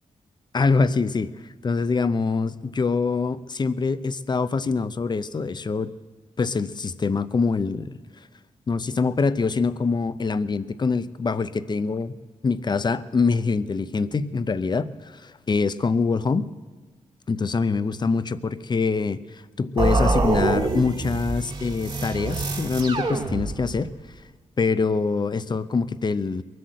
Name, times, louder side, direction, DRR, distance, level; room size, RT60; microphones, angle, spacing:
voice 1, 0.5-1.3 1.6-5.9 6.4-7.9 8.7-12.1 12.4-16.4 17.3-19.2 19.6-23.9 24.6-26.4, left 4 dB, 35° left, 14 dB, 0.6 m, -24 dB
sound 1, 19.8-23.9, right 2 dB, 40° right, 1.7 m, -25 dB
22.0 x 7.8 x 7.7 m, 1.3 s
cardioid pair, 85°, 13 cm